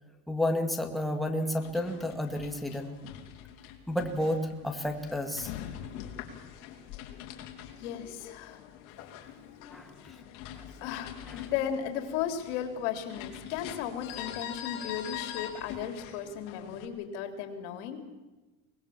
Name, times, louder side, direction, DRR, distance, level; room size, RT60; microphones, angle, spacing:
voice 1, 0.3-3.0 3.9-5.5 9.7-10.2 10.5-10.6 10.9-11.0 11.3-11.5, left 1 dB, ahead, 3 dB, 2.1 m, -31 dB
sound 1, 1.5-16.9, left 10 dB, 65° left, 3.3 m, -44 dB
voice 2, 7.8-8.6 10.0-18.0, left 9 dB, 85° left, 6 dB, 3.5 m, -36 dB
24.0 x 20.5 x 7.3 m, 1.2 s
cardioid pair, 135°, 34 cm